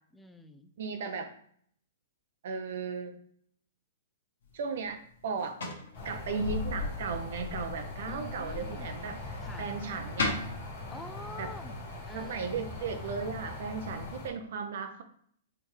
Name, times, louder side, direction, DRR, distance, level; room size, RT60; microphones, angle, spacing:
voice 1, 0.1-0.7 8.1-9.1 9.4-9.7 10.9-11.7 12.1-12.4, left 2 dB, 5° left, 8 dB, 0.4 m, -46 dB
voice 2, 0.8-1.3 2.4-3.2 4.5-5.6 6.0-10.4 11.4-11.5 12.1-15.0, right 5 dB, 65° right, 7 dB, 0.5 m, -36 dB
sound 1, 4.4-13.6, left 3 dB, 80° left, 1.4 m, -42 dB
sound 2, 5.9-14.3, left 3 dB, 50° left, 1.4 m, -40 dB
4.5 x 3.3 x 3.2 m, 0.62 s
hypercardioid pair, 140°, 0 cm